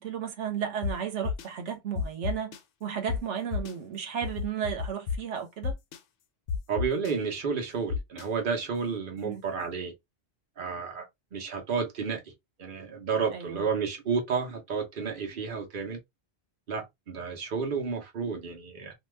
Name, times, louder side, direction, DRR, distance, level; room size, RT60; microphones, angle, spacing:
voice 1, 0.0-5.8 9.2-9.4 13.3-13.6, right 8 dB, 90° right, 1.0 m, -34 dB
sound 1, 0.8-0.9 1.2-1.5 2.0-2.6 3.1-3.2 3.5-3.7 4.2-5.2 5.6-6.0 6.5-7.1 7.9-8.2, left 6 dB, 85° left, 0.9 m, -30 dB
voice 2, 6.7-9.9 10.6-11.0 11.3-12.3 12.6-16.0 16.7-18.9, right 5 dB, 50° right, 1.0 m, -31 dB
2.8 x 2.2 x 3.2 m
omnidirectional pair, 1.2 m